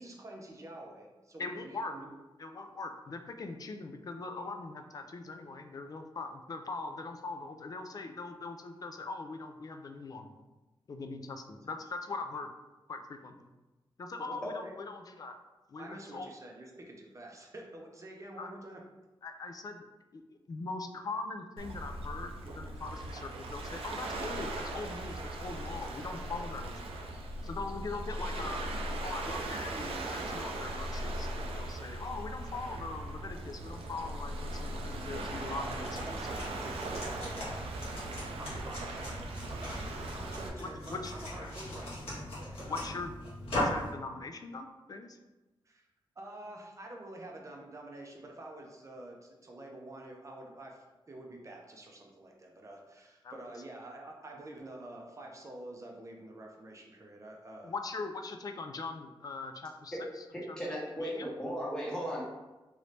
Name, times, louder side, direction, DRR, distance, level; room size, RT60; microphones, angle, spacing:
voice 1, 0.0-2.1 14.2-14.7 15.8-18.8 35.3-38.0 38.4-42.8 45.7-45.8 46.2-57.7, right 1 dB, 35° right, 0 dB, 0.6 m, -48 dB
voice 2, 1.4-1.9 2.4-10.4 10.9-12.5 12.9-13.5 14.0-15.3 15.7-16.3 18.4-18.5 19.2-19.9 20.1-20.2 20.5-26.9 27.4-28.6 29.0-35.9 36.4-36.5 40.6-41.1 42.7-43.1 43.6-45.2 53.2-53.3 57.6-60.6 61.0-61.3, left 3 dB, 40° left, 6 dB, 0.3 m, -41 dB
Waves surf, 21.6-40.5, right 1 dB, 90° right, 0.4 m, -39 dB
sound 1, 35.6-43.9, left 1 dB, 80° left, 1.4 m, -39 dB
voice 3, 60.3-62.2, equal, 10° left, -6 dB, 0.9 m, -36 dB
3.1 x 2.6 x 3.2 m, 1.1 s
wide cardioid pair, 100°, 9 cm